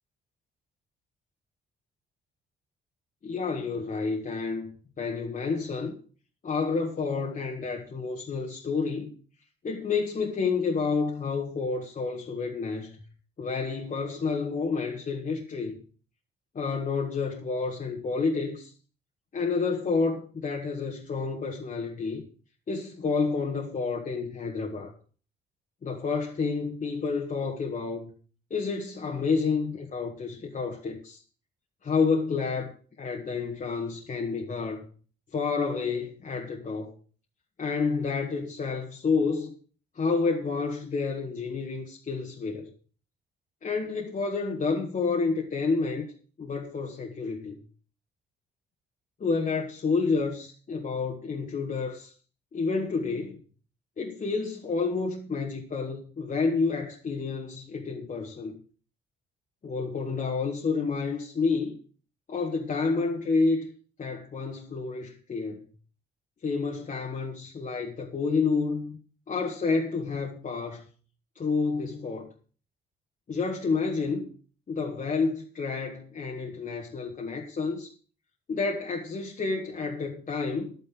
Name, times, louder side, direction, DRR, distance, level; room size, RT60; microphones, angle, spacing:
voice 1, 3.2-6.0 6.4-9.1 9.6-13.0 13.4-15.8 16.6-18.7 19.3-22.2 22.7-24.9 25.8-28.1 28.5-31.2 31.8-32.7 33.0-34.8 35.3-36.9 37.6-39.5 40.0-42.7 43.6-46.1 46.4-47.6 49.2-52.1 52.5-53.4 54.0-58.5 59.6-61.8 62.3-63.7 64.0-65.6 66.4-69.0 69.3-70.9 71.4-72.3 73.3-74.3 74.7-77.9 78.5-80.7, left 4 dB, 40° left, 1.8 m, -29 dB
11.0 x 9.5 x 6.0 m
cardioid pair, 90°, 20 cm